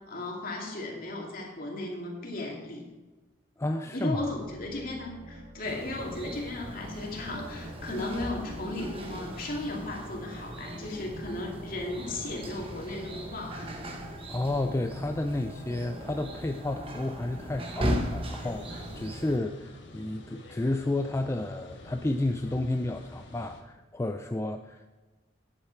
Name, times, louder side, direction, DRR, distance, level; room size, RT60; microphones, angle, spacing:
voice 1, 0.1-2.8 3.9-13.7, left 2 dB, 50° left, -1 dB, 2.4 m, -36 dB
voice 2, 3.6-4.2 14.3-24.9, left 2 dB, 15° left, 6 dB, 0.4 m, -31 dB
sound 1, 4.2-19.0, equal, 70° right, 1.6 m, -50 dB
sound 2, 5.6-19.4, equal, 30° right, 1.1 m, -37 dB
sound 3, 18.4-23.6, left 1 dB, 70° left, 1.4 m, -48 dB
10.0 x 8.5 x 4.7 m, 1.2 s
head